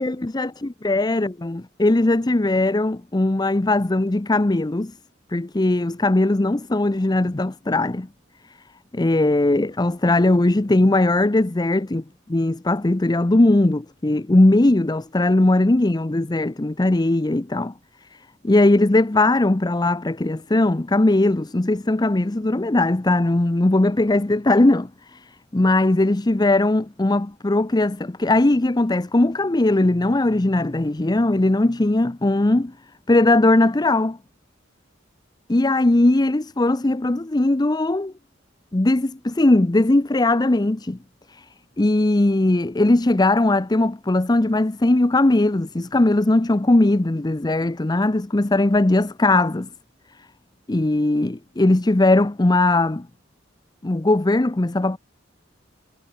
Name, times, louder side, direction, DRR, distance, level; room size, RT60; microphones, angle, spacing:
voice 1, 0.0-0.5 0.8-4.9 5.3-8.1 8.9-12.0 12.3-17.7 18.4-25.2 25.5-32.7 33.1-34.2 35.5-38.1 38.7-41.0 41.3-41.4 41.8-49.7 50.7-53.1 53.8-55.0, left 2 dB, 20° left, 0.6 m, -19 dB
head